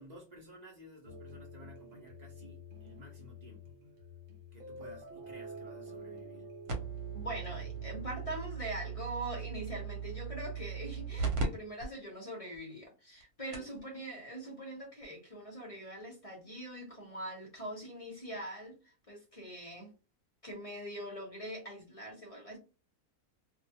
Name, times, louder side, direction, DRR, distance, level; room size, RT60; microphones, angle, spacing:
voice 1, 0.0-3.7 4.5-6.5 13.5-13.6, right 1 dB, 40° right, 0.6 m, -54 dB
sound 1, 1.0-8.3, equal, 65° right, 1.0 m, -49 dB
sound 2, 6.7-11.4 11.8-11.9 12.5-12.6 13.2-13.3 13.5-13.8 15.0-15.1, right 5 dB, 80° right, 1.2 m, -38 dB
voice 2, 7.1-19.9 20.4-22.6, right 1 dB, 35° left, 0.5 m, -43 dB
2.4 x 2.2 x 2.7 m
omnidirectional pair, 1.6 m